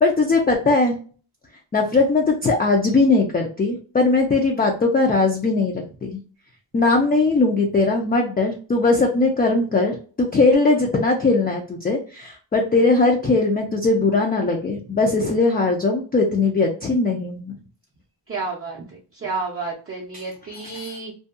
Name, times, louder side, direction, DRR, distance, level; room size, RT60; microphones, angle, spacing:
voice 1, 0.0-1.0 1.7-6.2 6.7-17.5 20.1-20.2 20.6-20.9, left 3 dB, 25° left, 1 dB, 0.3 m, -20 dB
voice 2, 18.3-21.1, right 3 dB, 30° right, -2 dB, 0.5 m, -31 dB
2.6 x 2.2 x 2.3 m, 0.39 s
wide cardioid pair, 140°, 45 cm